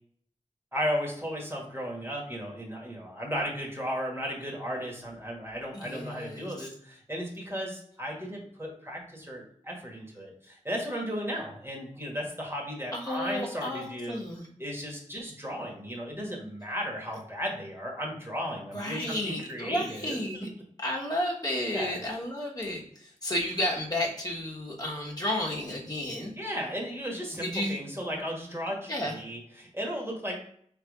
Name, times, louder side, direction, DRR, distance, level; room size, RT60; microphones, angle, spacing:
voice 1, 0.7-14.2 14.6-20.2 21.7-22.0 26.4-30.3, equal, 20° right, -2 dB, 1.5 m, -35 dB
voice 2, 5.7-6.7 12.9-14.5 18.7-20.5 20.8-26.3 27.3-27.8 28.9-29.2, left 1 dB, 30° left, -4 dB, 1.2 m, -32 dB
3.5 x 3.2 x 4.8 m, 0.63 s
wide cardioid pair, 55°, 13 cm